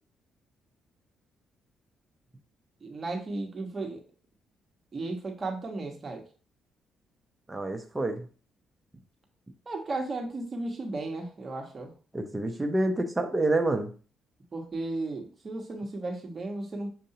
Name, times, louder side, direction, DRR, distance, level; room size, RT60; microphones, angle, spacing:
voice 1, 2.8-4.0 4.9-6.2 9.7-11.9 14.5-16.9, right 2 dB, 35° right, 2 dB, 1.2 m, -35 dB
voice 2, 7.5-8.3 12.1-13.9, right 2 dB, 15° right, 5 dB, 0.7 m, -28 dB
6.5 x 2.6 x 2.8 m, 0.38 s
cardioid pair, 90°, 0 cm